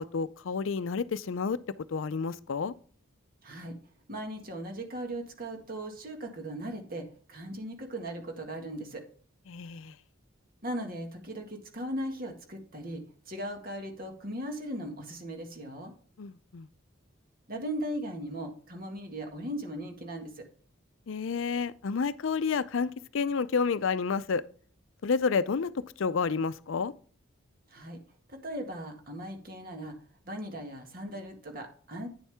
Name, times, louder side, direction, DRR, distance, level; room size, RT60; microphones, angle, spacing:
voice 1, 0.0-2.7 9.5-10.0 16.2-16.7 21.1-24.4 25.0-26.9, left 5 dB, 75° left, 0.5 m, -30 dB
voice 2, 3.4-3.8 4.1-9.0 10.6-15.9 17.5-20.5 27.7-28.0 28.3-30.0 30.2-32.1, right 1 dB, 45° right, 1.8 m, -38 dB
9.6 x 7.2 x 3.5 m
head